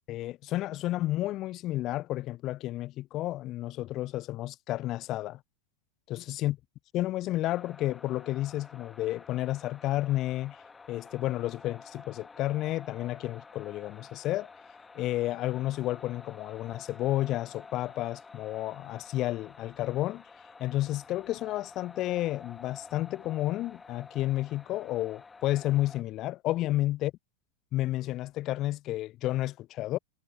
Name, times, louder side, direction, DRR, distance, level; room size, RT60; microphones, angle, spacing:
voice 1, 0.1-5.4 6.1-6.6 6.9-10.6 10.9-14.5 14.9-20.2 20.6-27.1 27.7-30.0, left 15 dB, 35° left, 0.6 m, -31 dB
sound 1, 7.5-26.0, left 4 dB, 15° left, 2.1 m, -50 dB
figure-of-eight pair, 90°, 0 cm